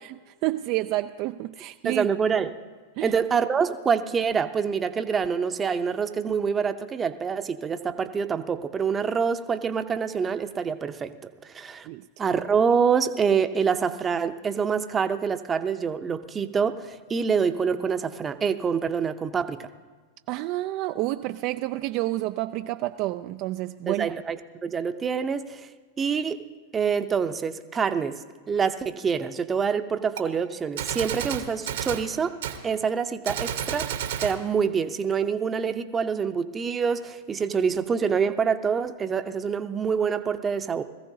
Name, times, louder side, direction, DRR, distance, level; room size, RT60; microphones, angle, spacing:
voice 1, 0.0-2.1 3.0-3.2 11.9-12.1 20.3-24.1, right 17 dB, 50° right, 8 dB, 0.3 m, -29 dB
voice 2, 1.8-2.5 3.0-11.1 11.4-11.9 12.2-19.7 23.9-24.4 24.6-25.7 26.0-26.4 26.7-28.2 28.5-32.4 32.6-40.8, right 6 dB, 20° right, 9 dB, 0.7 m, -26 dB
Gunshot gunfire, 30.2-30.3 30.8-32.1 32.4-32.6 33.2-34.4, right 9 dB, 75° right, 1.1 m, -31 dB
20.5 x 14.5 x 2.8 m, 1.4 s
hypercardioid pair, 105°, 0 cm